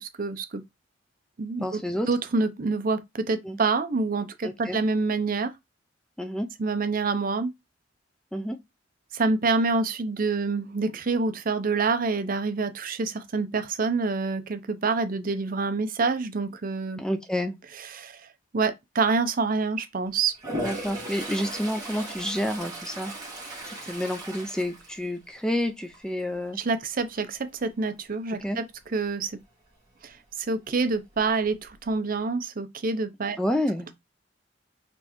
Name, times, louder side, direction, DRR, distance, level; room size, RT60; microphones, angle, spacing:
voice 1, 0.0-0.6 1.4-1.6 2.1-5.5 6.6-7.5 9.1-17.0 17.9-18.2 18.5-20.3 26.6-28.6 28.9-29.3 30.0-33.4, right 4 dB, 50° right, 0.6 m, -27 dB
voice 2, 1.6-2.1 3.4-3.6 4.4-4.8 6.2-6.5 8.3-8.6 17.0-17.6 20.6-23.1 23.7-26.6 28.4-28.6 33.4-33.9, left 1 dB, 5° left, 0.4 m, -29 dB
Toilet flush, 20.3-25.5 25.9-26.3 30.8-30.9 31.2-31.9, right 1 dB, 20° right, 1.9 m, -37 dB
4.2 x 3.2 x 3.0 m
head